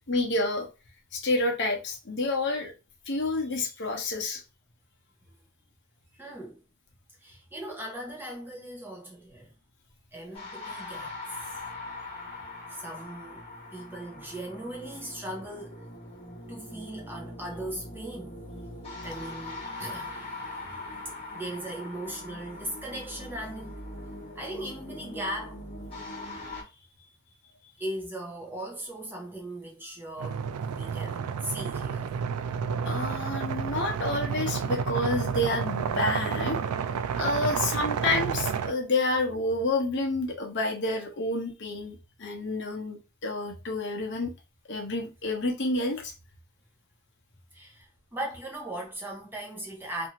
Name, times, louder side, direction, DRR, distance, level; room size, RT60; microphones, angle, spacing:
voice 1, 0.1-0.7 1.1-2.7 3.1-4.4 32.8-36.6 37.1-44.3 44.7-46.1, left 2 dB, 55° left, 0.8 m, -29 dB
voice 2, 6.1-6.6 7.2-9.5 10.1-11.1 11.4-11.5 12.7-13.4 13.7-15.9 16.5-18.4 19.0-20.1 21.3-23.7 24.3-25.6 27.8-32.1 47.5-50.1, right 1 dB, 10° right, 0.7 m, -38 dB
sound 1, 10.3-26.6, left 2 dB, 25° left, 1.0 m, -41 dB
sound 2, 30.2-38.7, right 6 dB, 85° right, 0.3 m, -30 dB
2.7 x 2.5 x 2.9 m
head